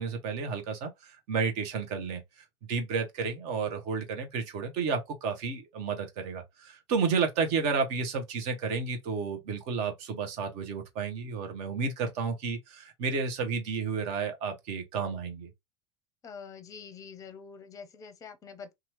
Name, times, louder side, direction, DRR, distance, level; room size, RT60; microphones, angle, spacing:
voice 1, 0.0-15.5, right 5 dB, 50° right, 1.0 m, -31 dB
voice 2, 16.2-18.7, left 6 dB, 25° left, 0.6 m, -45 dB
2.9 x 2.4 x 2.9 m
figure-of-eight pair, 85°, 14 cm